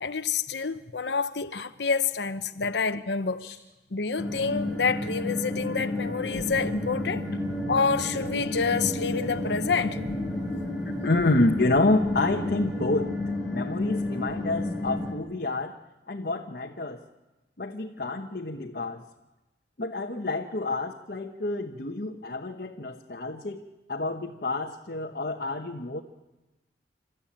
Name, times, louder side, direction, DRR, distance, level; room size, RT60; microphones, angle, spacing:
voice 1, 0.0-3.4 3.9-7.3 7.7-10.2, left 5 dB, 75° left, 0.8 m, -28 dB
sound 1, 4.2-15.1, left 1 dB, ahead, 4.1 m, -31 dB
voice 2, 10.8-13.1 13.5-15.7 16.1-17.0 17.6-19.0 19.8-23.6 23.9-26.0, left 2 dB, 55° left, 1.1 m, -28 dB
28.5 x 13.5 x 8.7 m
head